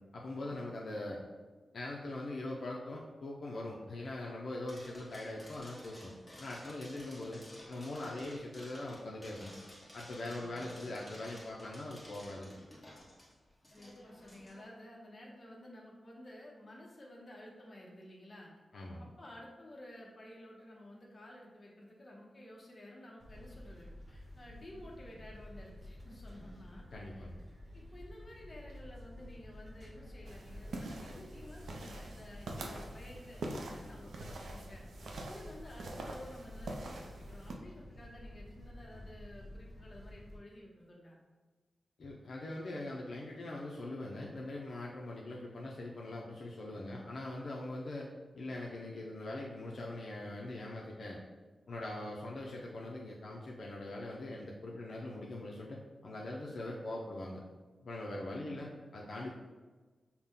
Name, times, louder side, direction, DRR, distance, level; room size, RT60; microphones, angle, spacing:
voice 1, 0.1-1.2 1.7-6.1 6.4-7.4 7.7-9.5 9.9-12.5 18.7-19.0 26.9-27.4 42.0-48.1 48.3-51.2 51.7-57.4 57.8-59.3, left 2 dB, 65° left, -3 dB, 0.5 m, -42 dB
sound 1, 4.7-14.6, left 1 dB, 15° left, 1.1 m, -53 dB
voice 2, 10.3-11.2 13.7-18.5 19.0-26.8 27.2-27.3 27.7-34.8 35.3-41.2 58.3-58.8, left 1 dB, 35° left, -2 dB, 0.9 m, -53 dB
sound 2, 23.2-40.4, left 1 dB, 40° right, 0.9 m, -51 dB
sound 3, 30.3-37.6, right 2 dB, 85° right, 0.5 m, -45 dB
5.6 x 2.1 x 3.6 m, 1.3 s
wide cardioid pair, 105°, 0 cm